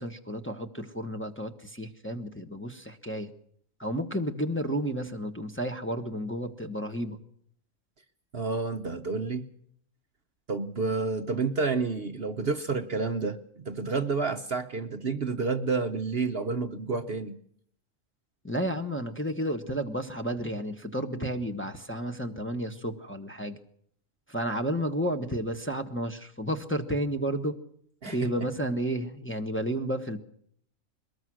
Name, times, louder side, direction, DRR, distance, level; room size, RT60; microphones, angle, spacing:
voice 1, 0.0-3.3 3.8-7.2 18.4-23.6 24.3-27.6 28.1-30.2, equal, 10° left, 1.3 m, -32 dB
voice 2, 8.3-9.5 10.5-17.4 28.0-28.3, right 4 dB, 50° right, 1.1 m, -30 dB
22.0 x 20.0 x 6.3 m
omnidirectional pair, 1.4 m